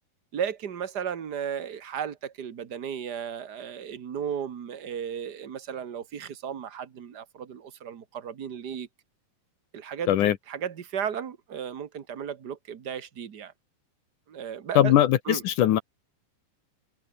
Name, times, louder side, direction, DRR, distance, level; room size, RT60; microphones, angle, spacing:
voice 1, 0.3-8.9 9.7-13.5 14.3-15.0 15.2-15.4, right 8 dB, 80° right, 0.9 m, -35 dB
voice 2, 14.8-15.8, left 12 dB, 65° left, 2.4 m, -20 dB
omnidirectional pair, 4.2 m